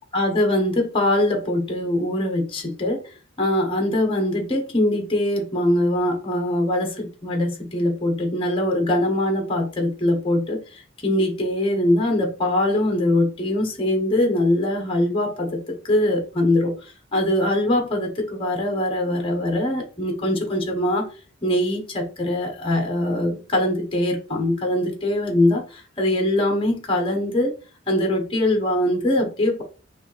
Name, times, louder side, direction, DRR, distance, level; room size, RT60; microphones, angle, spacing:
voice 1, 0.1-21.1 21.4-27.5 27.9-29.6, left 1 dB, 25° left, 1.1 m, -22 dB
6.2 x 2.6 x 3.3 m
head